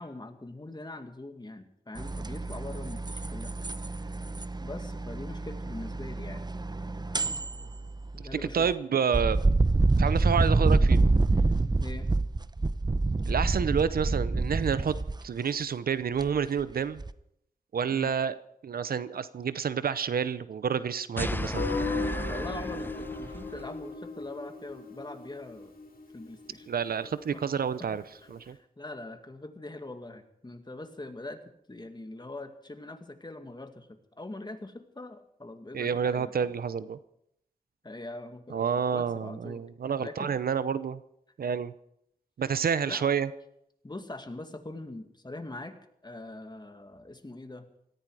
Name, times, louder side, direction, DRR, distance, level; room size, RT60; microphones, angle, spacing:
voice 1, 0.0-3.5 4.6-6.5 8.1-8.7 11.8-12.1 17.9-18.2 22.3-25.7 26.1-26.7 27.0-27.5 27.8-31.4 31.7-36.5 37.8-39.7 40.0-40.3 42.8-43.1 43.8-45.8 46.0-47.7, left 2 dB, 30° left, 7 dB, 2.1 m, -42 dB
sound 1, 2.0-8.7 9.1-15.2 16.2-16.6 17.0-17.1, right 3 dB, 30° right, 0.7 m, -27 dB
voice 2, 8.3-9.4 10.0-11.0 13.2-14.9 15.2-17.0 17.7-18.3 18.6-21.7 26.7-28.0 28.3-28.6 35.7-37.0 38.5-41.0 41.4-41.7 42.4-43.3, right 7 dB, 85° right, 15 dB, 0.7 m, -29 dB
sound 2, 21.2-23.7, left 1 dB, 15° left, 0.8 m, -34 dB
Guitar, 21.6-26.4, left 3 dB, 85° left, 3.9 m, -36 dB
17.5 x 14.5 x 4.9 m, 0.75 s
cardioid pair, 50°, 15 cm